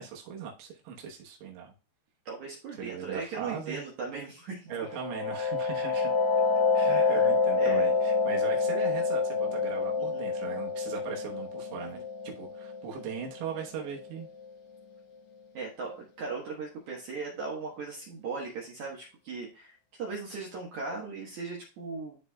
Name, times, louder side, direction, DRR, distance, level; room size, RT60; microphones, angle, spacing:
voice 1, 0.0-1.7 2.8-3.8 4.7-6.1 6.7-12.0 12.2-14.3, right 7 dB, 85° right, 0 dB, 3.4 m, -39 dB
voice 2, 2.3-4.9 6.9-7.3 7.6-7.9 10.1-10.2 11.8-12.0 15.5-22.2, right 4 dB, 65° right, -2 dB, 1.9 m, -38 dB
sound 1, 4.8-14.2, left 4 dB, 90° left, 1.6 m, -28 dB
12.5 x 4.2 x 2.2 m, 0.35 s
omnidirectional pair, 5.0 m